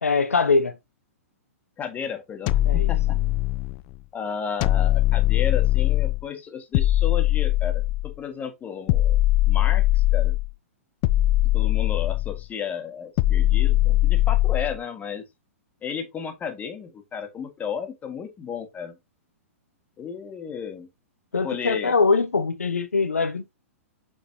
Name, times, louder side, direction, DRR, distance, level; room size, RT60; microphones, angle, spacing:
voice 1, 0.0-0.8 2.7-2.9 21.3-23.5, left 4 dB, 85° left, 0.9 m, -22 dB
voice 2, 1.8-3.2 4.1-9.2 9.4-10.4 11.5-15.2 15.8-19.0 20.0-20.9 21.4-21.9, left 7 dB, 20° left, 1.6 m, -33 dB
sound 1, 2.5-3.8 4.6-6.2 6.7-8.2 8.9-10.5 11.0-12.4 13.2-14.8, left 15 dB, 40° left, 0.5 m, -21 dB
7.4 x 4.7 x 2.7 m
hypercardioid pair, 110°, 8 cm